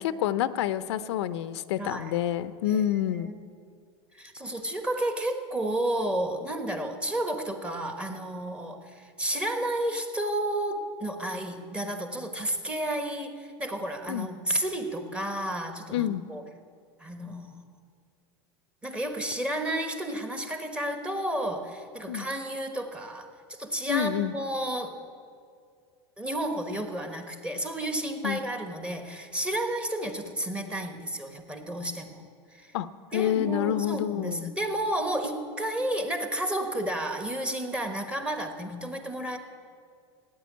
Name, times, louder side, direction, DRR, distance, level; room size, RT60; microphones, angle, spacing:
voice 1, 0.0-3.3 14.1-14.3 15.9-16.2 22.1-22.3 23.9-24.3 28.2-28.4 32.7-32.9 33.1-34.5, left 11 dB, 85° left, 14 dB, 0.7 m, -28 dB
voice 2, 1.8-2.2 2.6-2.8 3.2-3.5 4.1-16.4 17.0-17.6 18.8-23.3 23.6-24.9 26.2-32.2 32.5-32.7 33.1-39.4, right 1 dB, 10° right, 6 dB, 1.2 m, -31 dB
16.0 x 9.2 x 9.4 m, 2.3 s
supercardioid pair, 150°, 14 cm